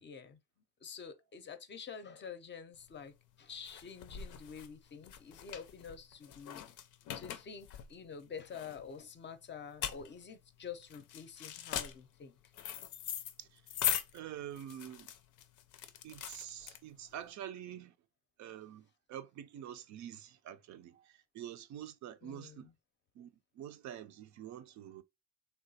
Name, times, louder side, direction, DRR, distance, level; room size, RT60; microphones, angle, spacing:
voice 1, 0.0-0.4 0.8-6.8 7.1-12.4 22.2-22.7, left 6 dB, 40° left, 0.5 m, -48 dB
sound 1, 2.8-17.2, left 10 dB, 85° left, 0.5 m, -41 dB
voice 2, 14.1-15.1 16.0-17.9 18.4-22.7 23.1-25.0, right 10 dB, 70° right, 0.5 m, -47 dB
3.4 x 2.3 x 2.7 m
cardioid pair, 90°, 30 cm